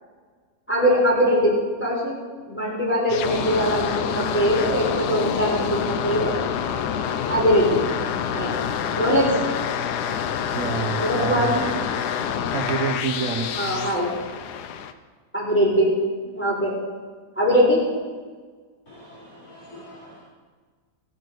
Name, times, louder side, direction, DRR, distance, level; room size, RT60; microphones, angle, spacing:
voice 1, 0.7-1.5 1.8-2.1 2.5-6.3 7.3-7.8 8.3-8.6 9.0-9.3 10.9-11.6 13.5-14.1 15.3-15.9 16.3-16.7 17.4-17.8, equal, 5° left, -5 dB, 4.3 m, -21 dB
sound 1, 3.1-14.9, left 8 dB, 85° left, 1.3 m, -27 dB
voice 2, 9.9-10.2 10.5-13.5, right 5 dB, 60° right, 6 dB, 1.5 m, -29 dB
voice 3, 18.9-20.2, left 1 dB, 60° left, -11 dB, 4.5 m, -45 dB
17.0 x 6.4 x 6.5 m, 1.5 s
omnidirectional pair, 1.7 m